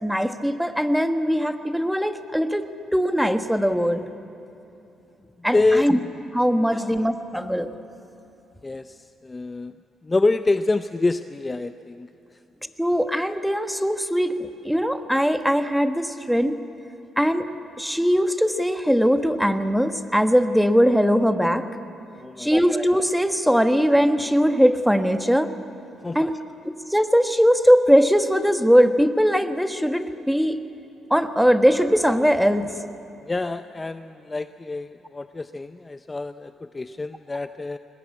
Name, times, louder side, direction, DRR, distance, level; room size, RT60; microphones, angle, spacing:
voice 1, 0.0-4.0 5.4-6.0 6.3-7.7 12.8-16.5 17.2-17.5 17.8-21.6 22.4-25.5 26.1-26.4 26.6-30.6 31.1-32.7, equal, ahead, 8 dB, 1.2 m, -20 dB
voice 2, 5.5-5.9 6.7-6.9 8.6-9.7 10.0-12.4 22.1-22.5 26.0-26.3 33.2-37.8, left 3 dB, 20° left, 11 dB, 0.5 m, -26 dB
21.5 x 20.0 x 8.4 m, 2.9 s
cardioid pair, 90°, 0 cm